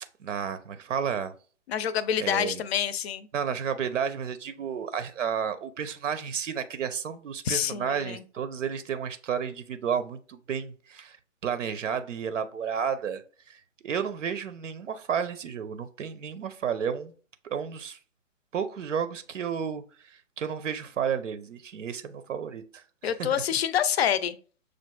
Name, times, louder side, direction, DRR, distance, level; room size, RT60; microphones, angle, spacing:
voice 1, 0.2-1.3 2.2-2.6 3.3-11.2 11.4-17.1 17.4-18.0 18.5-23.3, right 7 dB, 70° right, 0.6 m, -32 dB
voice 2, 1.7-3.3 7.4-8.2 23.0-24.4, left 9 dB, 55° left, 0.5 m, -27 dB
6.3 x 2.5 x 2.2 m
figure-of-eight pair, 125°, 38 cm